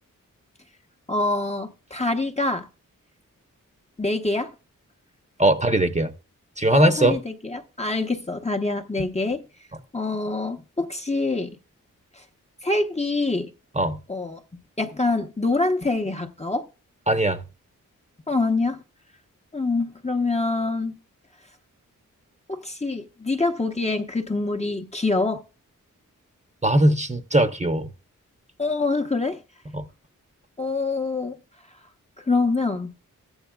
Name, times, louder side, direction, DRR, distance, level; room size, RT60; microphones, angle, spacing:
voice 1, 1.1-2.7 4.0-4.5 6.7-9.4 9.9-11.6 12.2-12.3 12.6-13.5 14.1-14.4 14.8-16.7 18.3-18.8 19.5-21.0 22.5-25.4 28.6-29.4 30.6-31.4 32.2-32.9, left 3 dB, 20° left, 1.0 m, -25 dB
voice 2, 5.4-6.1 6.6-7.2 13.8-14.0 17.1-17.4 26.6-27.9 29.7-29.8, right 1 dB, 20° right, 1.0 m, -20 dB
13.5 x 8.9 x 2.3 m
cardioid pair, 50°, 33 cm